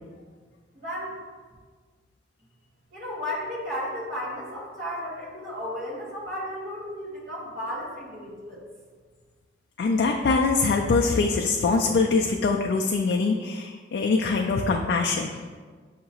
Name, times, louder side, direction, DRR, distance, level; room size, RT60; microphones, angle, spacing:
voice 1, 0.7-1.2 2.9-8.6, equal, 50° right, -7 dB, 1.5 m, -34 dB
voice 2, 9.8-15.4, left 4 dB, 60° left, 1 dB, 0.3 m, -23 dB
6.7 x 2.8 x 2.8 m, 1.5 s
head